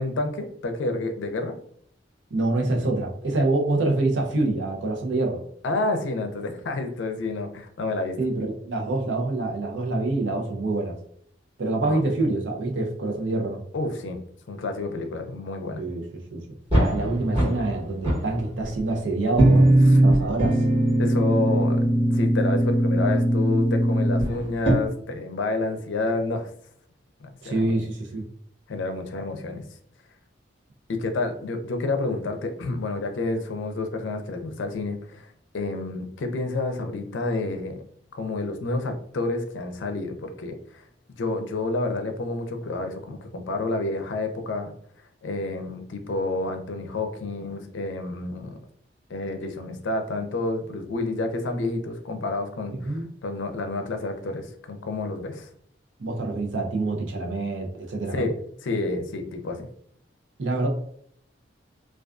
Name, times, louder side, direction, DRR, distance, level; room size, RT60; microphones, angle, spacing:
voice 1, 0.0-1.5 5.6-8.2 11.8-12.1 13.7-14.2 14.5-15.8 19.9-20.0 21.0-21.8 22.1-26.5 27.2-27.7 28.7-29.6 30.9-35.3 35.5-37.8 38.1-40.8 41.2-44.7 45.2-48.6 49.1-55.5 58.1-58.3 58.6-59.7, left 2 dB, 85° left, 6 dB, 0.4 m, -29 dB
voice 2, 2.3-5.4 8.2-11.0 11.6-13.6 15.8-16.4 16.7-19.7 20.0-20.6 27.4-28.3 52.7-53.1 56.0-58.3 60.4-60.7, right 2 dB, 80° right, 2 dB, 0.6 m, -26 dB
sound 1, 16.7-17.7 18.0-18.9 19.3-24.7, right 1 dB, 30° right, 1.0 m, -20 dB
2.4 x 2.3 x 2.3 m, 0.64 s
head